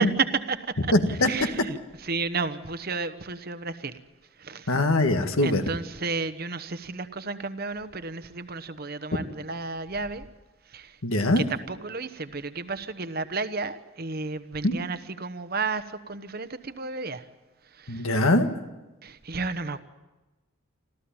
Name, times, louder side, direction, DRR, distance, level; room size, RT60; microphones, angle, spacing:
voice 1, 0.0-0.7 1.1-3.9 4.4-4.7 5.4-10.3 10.7-11.0 11.4-17.3 17.6-18.2 19.0-19.8, right 4 dB, 45° right, 1.1 m, -32 dB
voice 2, 0.9-1.3 4.7-5.6 11.0-11.5 14.6-14.7 17.9-18.5, left 1 dB, 75° left, 1.8 m, -22 dB
26.0 x 14.5 x 8.8 m
head